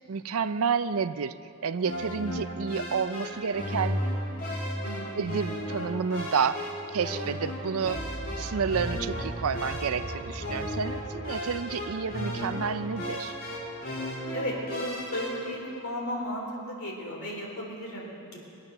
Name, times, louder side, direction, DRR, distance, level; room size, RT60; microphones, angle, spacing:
voice 1, 0.1-1.3 1.6-4.0 5.1-8.0 8.4-13.4, right 6 dB, 70° right, 13 dB, 0.5 m, -30 dB
sound 1, 1.8-15.5, equal, 40° left, 3.4 m, -35 dB
voice 2, 4.8-5.2 14.3-18.4, equal, 65° left, -2 dB, 3.8 m, -35 dB
sound 2, 7.8-13.9, right 1 dB, 35° right, 0.9 m, -40 dB
22.0 x 8.9 x 6.7 m, 2.7 s
head